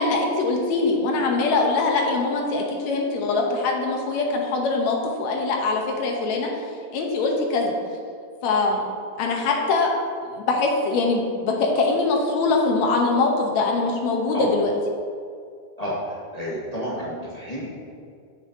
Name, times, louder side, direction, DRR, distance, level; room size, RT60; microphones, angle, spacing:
voice 1, 0.0-6.6 6.9-7.7 8.4-8.8 9.2-9.9 10.2-14.7, left 3 dB, 75° left, 1 dB, 2.1 m, -23 dB
voice 2, 15.8-17.8, equal, 45° left, -8 dB, 0.4 m, -30 dB
13.0 x 6.4 x 2.7 m, 2.3 s
omnidirectional pair, 3.3 m